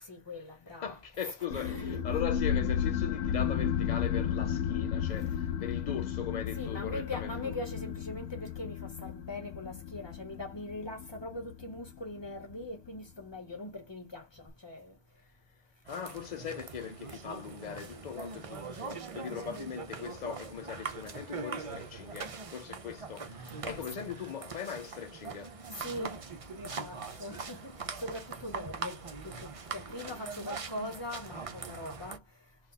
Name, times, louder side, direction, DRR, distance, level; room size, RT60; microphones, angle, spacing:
voice 1, 0.0-1.0 1.2-2.0 6.5-15.0 19.3-19.5 23.5-24.1 25.8-26.2 26.6-32.2, left 1 dB, 20° left, 1.7 m, -42 dB
voice 2, 0.8-7.5 15.8-25.5, left 8 dB, 60° left, 0.5 m, -40 dB
sound 1, 1.5-12.6, left 8 dB, 90° left, 0.9 m, -33 dB
sound 2, 15.9-32.2, right 4 dB, 40° right, 0.5 m, -42 dB
4.1 x 2.4 x 4.0 m
omnidirectional pair, 1.2 m